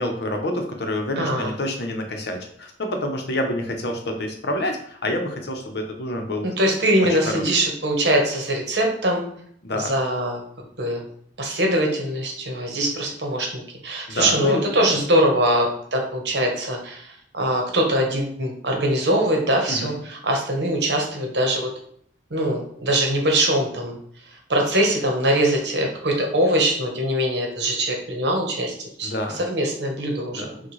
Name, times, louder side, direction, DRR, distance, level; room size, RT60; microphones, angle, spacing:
voice 1, 0.0-6.5 7.1-7.4 9.6-9.9 14.1-14.7 19.7-20.0 29.0-29.4 30.3-30.6, left 1 dB, 65° left, 3 dB, 0.7 m, -27 dB
voice 2, 1.2-1.5 6.4-9.2 9.7-10.4 10.8-11.1 11.4-21.7 22.3-24.0 24.5-30.5, right 1 dB, 65° right, 1 dB, 1.0 m, -22 dB
6.0 x 2.3 x 3.1 m, 0.63 s
head